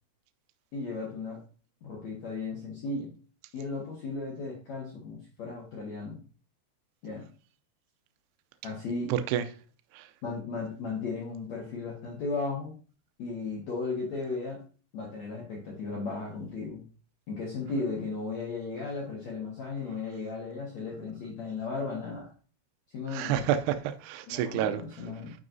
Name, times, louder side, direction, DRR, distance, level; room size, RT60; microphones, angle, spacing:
voice 1, 0.7-1.4 1.8-3.1 3.5-6.2 7.0-7.3 8.6-9.1 10.2-12.7 13.2-14.6 14.9-16.9 17.3-22.3 22.9-23.5 24.3-25.3, left 3 dB, 60° left, 1.9 m, -35 dB
voice 2, 9.1-9.4 9.9-10.1 23.1-24.8, right 10 dB, 80° right, 2.5 m, -29 dB
10.5 x 5.5 x 2.7 m
omnidirectional pair, 5.1 m